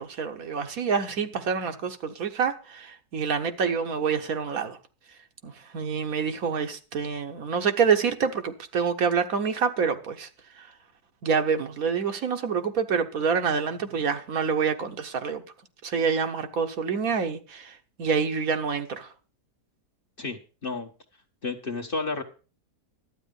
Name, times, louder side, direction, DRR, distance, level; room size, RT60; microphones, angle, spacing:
voice 1, 0.0-4.8 5.4-10.3 10.6-10.7 11.2-15.4 15.8-19.1, right 6 dB, 65° right, 1.4 m, -27 dB
voice 2, 20.2-20.9 21.4-22.2, left 3 dB, 40° left, 1.3 m, -31 dB
12.0 x 9.1 x 5.2 m
omnidirectional pair, 1.7 m